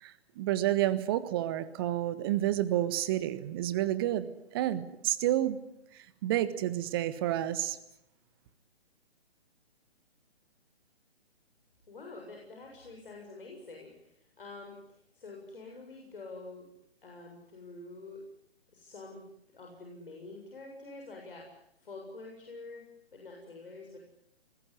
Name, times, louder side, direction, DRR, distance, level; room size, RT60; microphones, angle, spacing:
voice 1, 0.0-4.3 4.5-5.6 6.2-7.8, right 13 dB, 20° right, 14 dB, 1.5 m, -29 dB
voice 2, 11.9-14.8 15.1-16.7 17.0-18.2 18.7-19.2 19.5-22.9 23.1-24.1, left 3 dB, 55° left, 0 dB, 7.5 m, -47 dB
25.5 x 21.0 x 9.8 m, 0.77 s
figure-of-eight pair, 135°, 33 cm